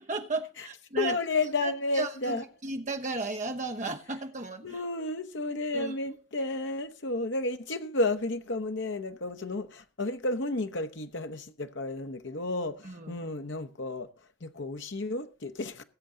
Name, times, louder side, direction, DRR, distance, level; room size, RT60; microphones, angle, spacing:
voice 1, 0.1-1.2 1.6-4.8 5.7-5.9 12.8-13.2, right 3 dB, 35° right, 1.0 m, -35 dB
voice 2, 1.0-2.4 4.6-14.1 14.4-15.8, left 2 dB, 55° left, 0.9 m, -32 dB
19.5 x 7.7 x 3.9 m
head